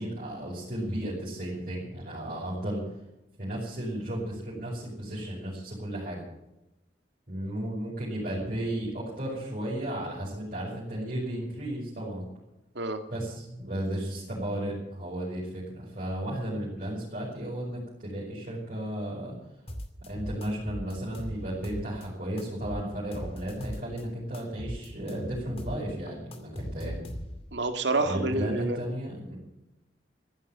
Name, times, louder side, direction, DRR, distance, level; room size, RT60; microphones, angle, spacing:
voice 1, 0.0-2.8 3.4-6.2 7.3-12.2 13.1-19.3 20.0-27.0 28.0-29.4, right 1 dB, 45° right, -7 dB, 6.0 m, -34 dB
sound 1, 19.7-22.1 22.4-24.0 24.3-27.6, equal, 35° left, 2.4 m, -38 dB
voice 2, 27.5-28.8, right 2 dB, 75° right, 6 dB, 2.1 m, -28 dB
15.0 x 11.5 x 7.3 m, 0.93 s
head